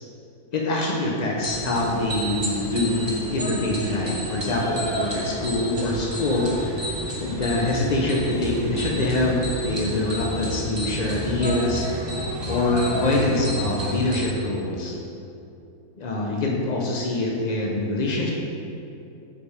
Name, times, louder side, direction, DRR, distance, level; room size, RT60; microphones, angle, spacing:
voice 1, 0.5-6.9 7.2-11.9 12.5-15.0 16.0-18.3, left 2 dB, 75° left, -2 dB, 0.3 m, -24 dB
sound 1, 1.4-14.3, equal, 45° right, 0.3 m, -30 dB
5.0 x 5.0 x 4.9 m, 2.7 s
omnidirectional pair, 1.7 m